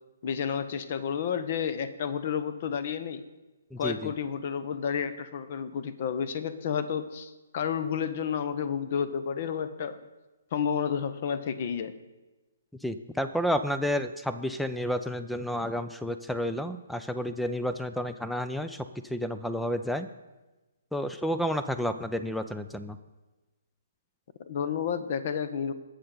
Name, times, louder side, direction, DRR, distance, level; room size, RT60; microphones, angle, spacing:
voice 1, 0.2-3.2 3.8-10.0 10.5-12.0 24.4-25.7, left 7 dB, 45° left, 13 dB, 0.8 m, -31 dB
voice 2, 3.7-4.1 12.8-20.1 20.9-23.0, equal, ahead, 11 dB, 0.4 m, -31 dB
19.0 x 6.7 x 3.9 m, 1.1 s
figure-of-eight pair, 130°, 0 cm